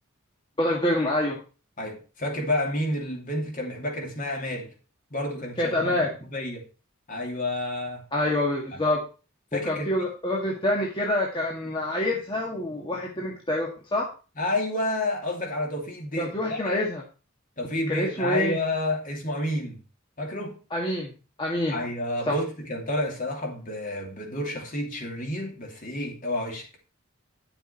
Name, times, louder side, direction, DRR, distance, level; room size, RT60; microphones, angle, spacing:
voice 1, 0.6-1.4 5.6-6.1 8.1-9.0 9.5-14.1 16.2-17.0 17.9-18.6 20.7-21.1 21.4-21.8 22.3-22.4, left 1 dB, 25° left, 1.9 m, -26 dB
voice 2, 1.8-4.7 5.1-6.6 7.1-8.0 8.7-8.8 9.5-10.1 14.4-16.8 17.6-19.8 20.2-20.6 21.7-26.7, left 1 dB, 40° left, 2.9 m, -30 dB
10.5 x 7.0 x 4.4 m
head